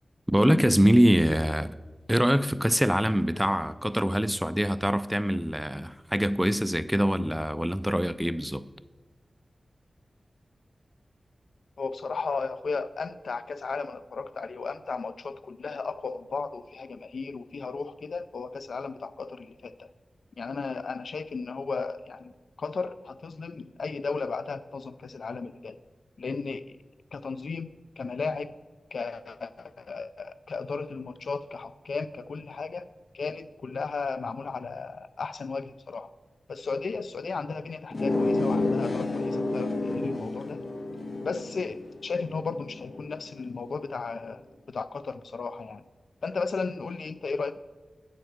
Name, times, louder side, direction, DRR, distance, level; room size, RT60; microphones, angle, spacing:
voice 1, 0.3-1.7 2.1-8.6, equal, 5° right, 0.3 m, -24 dB
voice 2, 11.8-19.9 20.4-22.3 22.6-25.8 26.2-26.8 27.1-28.5 28.9-32.9 33.1-36.1 36.5-40.6 41.2-44.4 44.7-45.8 46.2-47.6, left 4 dB, 80° left, 0.4 m, -34 dB
sound 1, 37.9-43.2, left 2 dB, 50° left, 0.7 m, -30 dB
9.5 x 4.5 x 6.4 m
wide cardioid pair, 75°, 0 cm